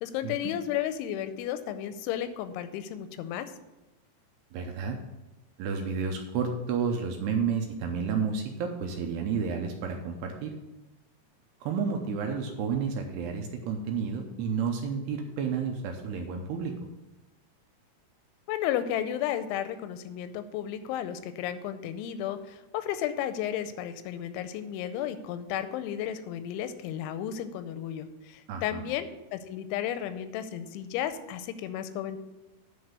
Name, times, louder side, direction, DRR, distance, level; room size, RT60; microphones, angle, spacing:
voice 1, 0.0-3.5 18.5-32.2, left 10 dB, 90° left, 11 dB, 3.1 m, -33 dB
voice 2, 4.5-5.0 5.6-10.5 11.6-16.7 28.5-28.8, right 6 dB, 75° right, 3 dB, 2.5 m, -31 dB
9.6 x 4.5 x 6.6 m, 1.0 s
omnidirectional pair, 5.3 m